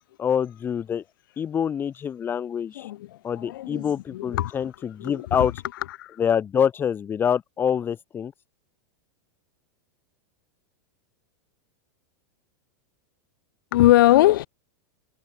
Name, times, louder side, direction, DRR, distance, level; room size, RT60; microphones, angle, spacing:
voice 1, 0.2-1.0 1.4-2.9 3.2-5.5 6.2-8.3, left 8 dB, 20° left, 3.9 m, -26 dB
voice 2, 2.8-4.6 5.0-5.5 5.9-6.2 13.7-14.5, left 15 dB, 70° left, 4.3 m, -21 dB
supercardioid pair, 160°, 12 cm